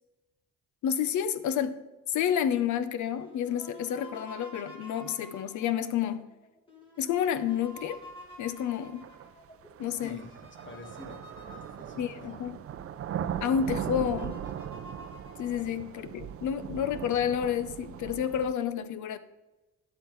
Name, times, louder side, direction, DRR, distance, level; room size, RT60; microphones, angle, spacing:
voice 1, 0.8-1.8 2.1-6.3 7.0-8.0 8.4-9.1 9.8-10.2 12.0-12.6 13.4-14.4 15.4-19.2, left 9 dB, 75° left, 13 dB, 0.7 m, -30 dB
sound 1, 3.1-12.4 12.9-13.0 13.2-16.0, left 1 dB, 15° left, 3.2 m, -50 dB
sound 2, 7.9-8.0 9.0-18.5, right 9 dB, 50° right, 0.5 m, -39 dB
voice 2, 10.0-12.5 15.6-15.7, left 2 dB, 40° left, 4 dB, 1.6 m, -48 dB
11.0 x 8.0 x 3.2 m, 1.1 s
cardioid pair, 90°, 30 cm